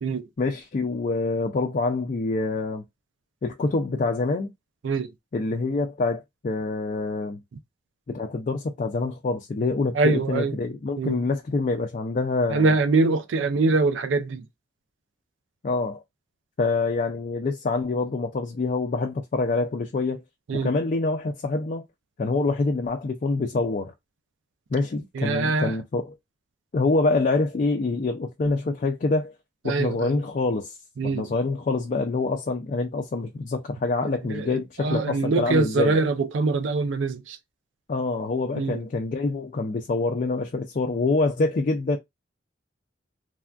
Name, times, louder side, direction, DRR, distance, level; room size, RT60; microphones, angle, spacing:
voice 1, 0.4-2.8 3.4-4.5 5.3-7.4 8.1-12.7 15.6-16.0 16.6-20.2 20.6-21.8 22.2-23.9 24.7-26.2 26.7-29.3 29.6-30.8 31.0-36.0 37.9-42.0, left 3 dB, 40° left, 0.4 m, -26 dB
voice 2, 9.9-10.5 11.0-11.2 12.5-14.4 20.5-20.7 25.2-25.7 29.7-30.1 31.0-31.3 34.3-34.5 34.8-37.4 38.6-38.8, right 3 dB, 80° right, 0.4 m, -23 dB
3.3 x 2.4 x 2.2 m
head